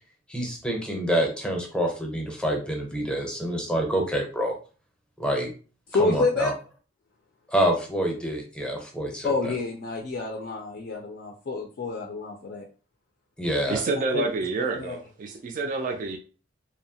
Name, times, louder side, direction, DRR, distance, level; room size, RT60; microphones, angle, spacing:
voice 1, 0.3-4.6 5.2-5.5 6.0-6.5 7.5-9.3 13.4-13.8, right 1 dB, 5° left, 1 dB, 0.6 m, -27 dB
voice 2, 5.9-6.5 9.2-12.7 13.6-14.3 14.6-15.0, left 3 dB, 55° left, 1 dB, 0.4 m, -28 dB
voice 3, 13.7-16.2, right 3 dB, 45° right, 3 dB, 0.3 m, -28 dB
2.6 x 2.0 x 2.7 m, 0.37 s
head